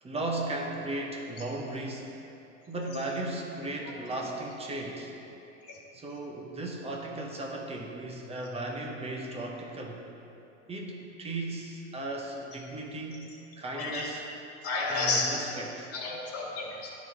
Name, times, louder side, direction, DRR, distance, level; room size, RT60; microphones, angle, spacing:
voice 1, 0.0-2.2 2.7-5.2 5.9-10.1 10.7-13.3 13.6-14.2 14.9-15.9, right 2 dB, 15° right, 0 dB, 1.0 m, -36 dB
voice 2, 13.8-14.1 14.6-15.3 15.9-16.9, left 3 dB, 40° left, -3 dB, 1.9 m, -31 dB
11.0 x 4.1 x 4.7 m, 2.9 s
supercardioid pair, 115°, 37 cm